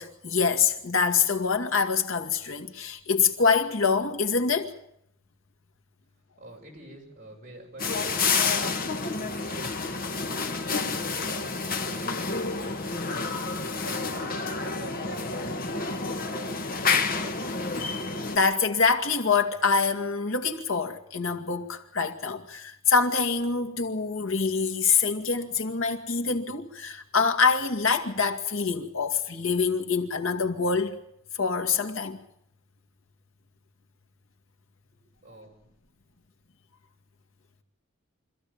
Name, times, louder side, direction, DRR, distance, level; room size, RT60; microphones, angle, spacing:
voice 1, 0.0-4.8 18.3-31.0 31.4-32.2, left 5 dB, 85° left, 2.1 m, -25 dB
voice 2, 6.4-8.2 8.4-13.9 14.5-15.3 15.7-17.9 35.2-35.7, right 1 dB, 40° right, 7.2 m, -48 dB
sound 1, 7.8-18.4, left 4 dB, 45° left, 1.6 m, -29 dB
25.5 x 15.0 x 8.8 m
head